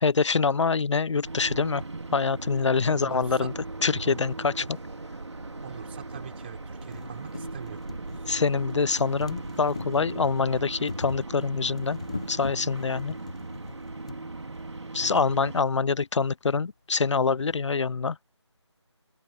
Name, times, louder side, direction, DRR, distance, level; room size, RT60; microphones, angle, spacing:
voice 1, 0.0-1.8 2.1-3.5 3.8-4.6 8.3-12.0 12.3-13.1 14.9-18.2, left 5 dB, 80° left, 0.4 m, -25 dB
sound 1, 1.2-15.6, right 2 dB, 70° right, 2.7 m, -38 dB
voice 2, 2.9-3.5 4.6-4.7 5.6-7.8 8.1-8.2 15.0-15.2, right 9 dB, 20° right, 3.7 m, -42 dB
sound 2, 4.6-4.7 5.7-5.8 6.3-6.4 6.6-14.2 15.1-15.2 15.5-15.6, left 3 dB, 15° left, 0.4 m, -42 dB
open air
figure-of-eight pair, 165°, 15 cm